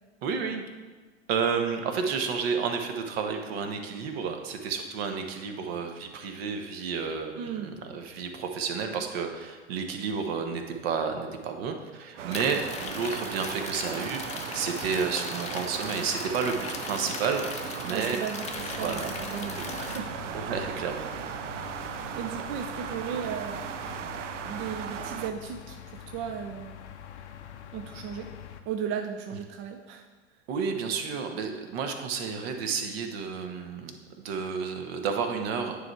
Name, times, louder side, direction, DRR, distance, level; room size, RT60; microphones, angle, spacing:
voice 1, 0.2-0.6 1.3-18.2 18.8-19.1 20.3-21.1 30.5-34.0 34.2-35.8, right 6 dB, 55° right, 5 dB, 1.0 m, -31 dB
voice 2, 7.4-7.7 17.9-20.4 22.0-23.7 24.4-26.8 27.7-28.3 28.7-30.0, right 7 dB, 35° right, 4 dB, 0.5 m, -36 dB
sound 1, 12.2-25.3, right 8 dB, 80° right, 0.5 m, -37 dB
sound 2, 12.3-20.0, left 6 dB, 20° left, 0.5 m, -39 dB
sound 3, 18.5-28.6, left 9 dB, 70° left, 0.7 m, -44 dB
9.3 x 3.3 x 4.5 m, 1.3 s
hypercardioid pair, 95°, 36 cm